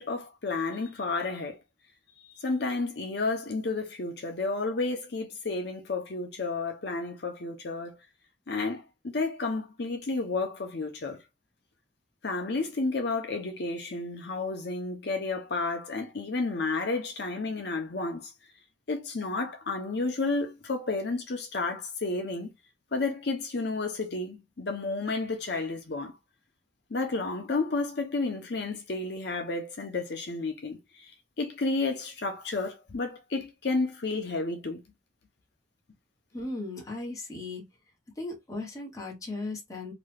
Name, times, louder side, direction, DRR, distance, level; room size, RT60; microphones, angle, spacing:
voice 1, 0.0-1.6 2.4-8.0 8.5-11.2 12.2-18.3 18.9-22.5 22.9-26.1 26.9-31.1 31.4-34.8, left 3 dB, 65° left, 0.7 m, -31 dB
voice 2, 36.3-37.7 38.2-39.9, left 2 dB, 20° left, 1.1 m, -37 dB
2.9 x 2.3 x 3.3 m
head